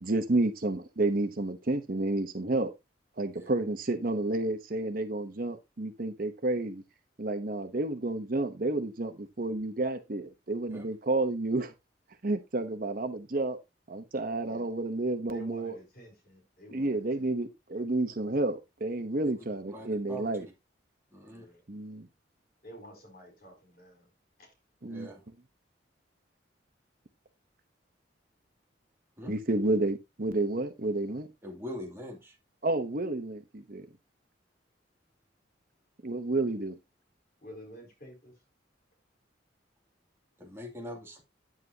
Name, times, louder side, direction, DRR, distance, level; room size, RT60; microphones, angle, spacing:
voice 1, 0.0-2.7 3.2-6.8 7.2-11.7 12.2-13.6 13.9-15.8 16.7-20.5 21.7-22.1 24.8-25.1 29.3-31.3 32.6-33.9 36.0-36.8, right 2 dB, 50° right, 0.9 m, -30 dB
voice 2, 15.3-17.3 19.3-19.4 21.2-21.6 22.6-24.1 24.4-24.5 37.4-38.3, equal, 50° left, 4.4 m, -51 dB
voice 3, 19.7-20.2 21.1-21.4 24.8-25.2 29.2-29.4 31.4-32.4 40.4-41.2, equal, 15° right, 2.5 m, -42 dB
9.6 x 7.5 x 2.8 m
head